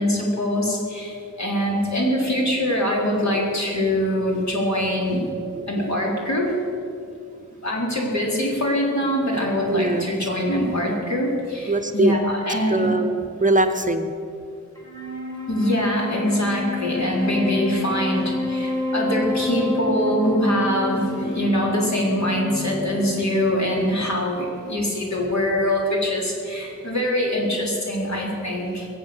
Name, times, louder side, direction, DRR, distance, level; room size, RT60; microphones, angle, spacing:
voice 1, 0.0-5.2 5.7-6.6 7.6-12.9 15.5-28.9, equal, 60° left, -3 dB, 4.1 m, -23 dB
voice 2, 9.6-10.0 11.7-12.2 12.7-14.1, right 2 dB, 25° right, 8 dB, 0.8 m, -21 dB
Wind instrument woodwind instrument, 14.8-24.3, left 2 dB, 10° left, 2.7 m, -29 dB
22.5 x 8.0 x 6.7 m, 2.5 s
wide cardioid pair, 105°, 31 cm